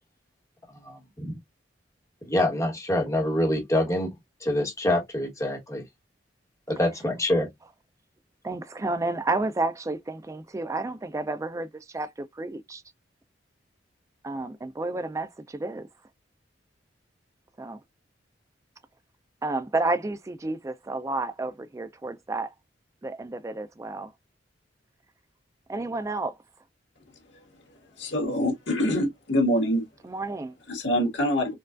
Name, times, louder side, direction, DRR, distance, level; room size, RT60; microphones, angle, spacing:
voice 1, 0.8-1.4 2.2-4.1 4.4-5.8 6.7-7.5, left 1 dB, 15° left, 1.2 m, -25 dB
voice 2, 8.4-12.8 14.2-15.9 17.6-17.8 19.4-22.5 23.0-24.1 25.7-26.4 30.0-30.6, right 2 dB, 15° right, 0.3 m, -31 dB
voice 3, 28.0-29.8 30.7-31.5, equal, 80° left, 1.6 m, -25 dB
4.4 x 2.3 x 2.4 m
head